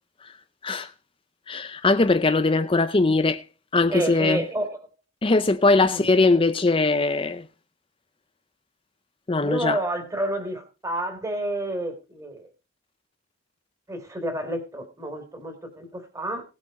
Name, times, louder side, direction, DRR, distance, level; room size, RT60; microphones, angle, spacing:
voice 1, 1.5-3.4 3.7-4.4 5.2-7.4 9.3-9.8, left 3 dB, 25° left, 0.6 m, -21 dB
voice 2, 3.9-4.8 5.9-6.0 9.4-12.5 13.9-16.4, right 1 dB, 15° right, 3.4 m, -30 dB
18.5 x 8.3 x 4.1 m
head